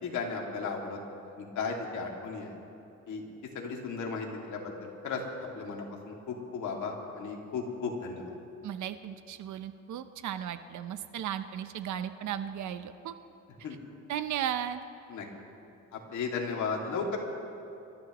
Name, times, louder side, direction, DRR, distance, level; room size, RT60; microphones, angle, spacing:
voice 1, 0.0-1.0 1.4-2.5 3.1-3.3 3.5-5.2 5.5-8.3 13.6-13.8 15.1-15.3 15.9-17.2, left 5 dB, 75° left, 0 dB, 2.4 m, -35 dB
voice 2, 8.6-13.1 14.1-14.8, right 10 dB, 75° right, 10 dB, 0.8 m, -35 dB
27.0 x 13.0 x 3.1 m, 2.8 s
cardioid pair, 90°, 30 cm